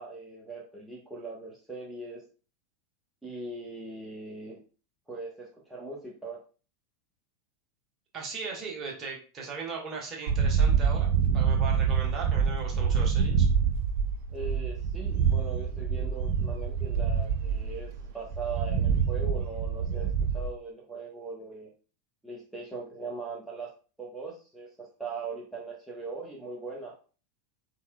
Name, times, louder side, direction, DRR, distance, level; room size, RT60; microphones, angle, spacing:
voice 1, 0.0-2.2 3.2-4.6 5.1-6.4 14.3-21.7 22.2-23.7 24.0-26.9, right 3 dB, 5° right, -4 dB, 1.0 m, -40 dB
voice 2, 8.1-13.5, right 4 dB, 30° right, -1 dB, 1.3 m, -38 dB
sound 1, 10.3-20.5, right 6 dB, 55° right, 0.4 m, -26 dB
4.3 x 3.6 x 2.2 m, 0.36 s
figure-of-eight pair, 85°, 0 cm